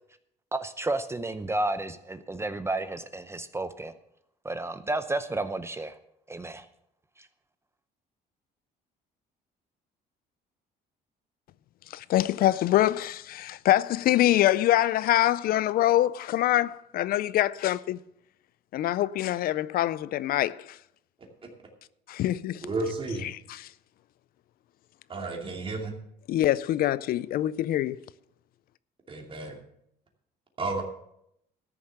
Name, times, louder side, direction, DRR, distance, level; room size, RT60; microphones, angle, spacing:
voice 1, 0.5-3.9 4.4-5.9 6.3-6.6, right 2 dB, 15° right, 0.6 m, -31 dB
voice 2, 11.9-18.0 18.7-20.8 22.1-22.7 23.2-23.7 26.3-28.0, left 13 dB, 60° left, 0.4 m, -25 dB
voice 3, 22.6-23.3 25.1-25.9 29.1-29.6 30.6-30.8, right 3 dB, 30° right, 2.6 m, -32 dB
13.0 x 7.0 x 6.6 m
cardioid pair, 110°, 17 cm